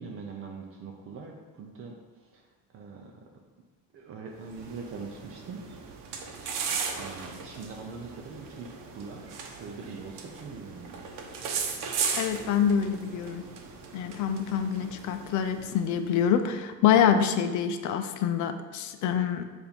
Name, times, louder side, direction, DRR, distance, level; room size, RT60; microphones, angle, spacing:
voice 1, 0.0-2.5 2.7-3.2 3.9-5.6 7.0-11.2, right 4 dB, 45° right, 1 dB, 0.5 m, -42 dB
sound 1, 4.4-16.2, right 6 dB, 80° right, 0.9 m, -37 dB
voice 2, 12.2-13.4 13.9-19.4, left 8 dB, 65° left, 8 dB, 0.5 m, -26 dB
7.1 x 2.6 x 5.1 m, 1.4 s
cardioid pair, 170°, 32 cm